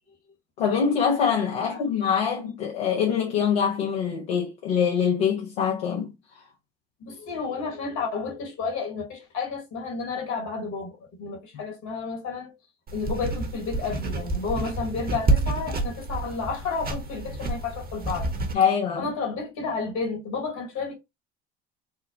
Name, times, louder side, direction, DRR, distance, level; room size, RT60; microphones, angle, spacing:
voice 1, 0.6-6.1 18.5-19.1, left 7 dB, 85° left, 0.8 m, -24 dB
voice 2, 7.0-12.5 12.9-18.3 19.0-20.9, left 4 dB, 65° left, 1.9 m, -31 dB
sound 1, 12.9-18.5, right 2 dB, 30° right, 1.0 m, -28 dB
4.7 x 2.1 x 2.7 m
hypercardioid pair, 65°, 31 cm